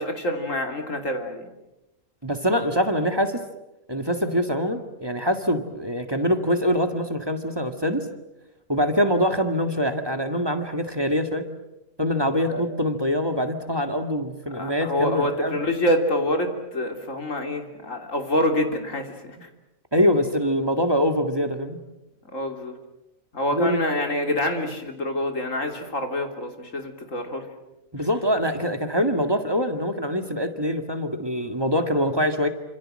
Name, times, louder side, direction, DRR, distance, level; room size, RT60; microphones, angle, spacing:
voice 1, 0.0-1.5 12.5-12.6 14.5-19.5 22.3-22.8 23.3-27.5 28.0-28.1, left 1 dB, 65° left, 5 dB, 3.5 m, -26 dB
voice 2, 2.2-3.4 3.9-8.1 8.7-11.5 12.0-15.6 19.9-21.8 23.5-23.8 27.9-32.5, equal, 15° right, 6 dB, 2.0 m, -24 dB
28.0 x 26.5 x 7.7 m, 0.94 s
omnidirectional pair, 1.4 m